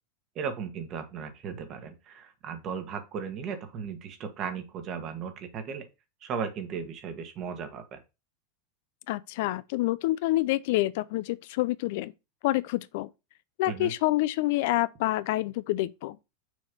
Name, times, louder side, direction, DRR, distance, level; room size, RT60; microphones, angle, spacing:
voice 1, 0.3-5.9 6.2-8.0 13.7-13.9, right 6 dB, 40° right, 1.4 m, -36 dB
voice 2, 9.1-12.1 12.4-13.1 13.6-16.2, left 17 dB, 65° left, 0.4 m, -27 dB
6.3 x 3.1 x 5.2 m
supercardioid pair, 130°, 0 cm